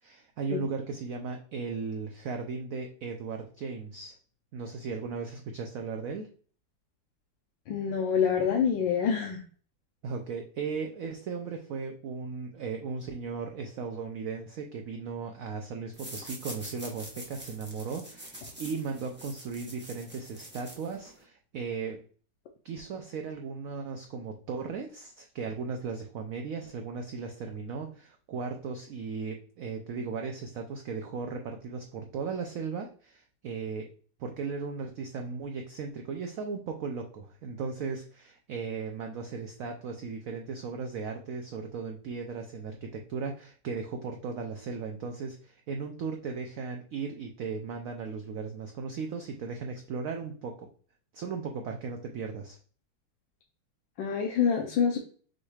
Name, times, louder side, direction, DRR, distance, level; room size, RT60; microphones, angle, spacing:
voice 1, 0.0-4.2 4.5-6.3 10.0-22.0 22.6-33.9 34.2-50.7 51.1-52.6, right 5 dB, 80° right, 4 dB, 0.7 m, -36 dB
voice 2, 7.7-9.4 54.0-55.0, left 7 dB, 90° left, 0 dB, 1.4 m, -26 dB
sound 1, 15.9-21.2, right 1 dB, 10° right, 0.6 m, -45 dB
6.2 x 3.2 x 2.3 m, 0.43 s
omnidirectional pair, 2.0 m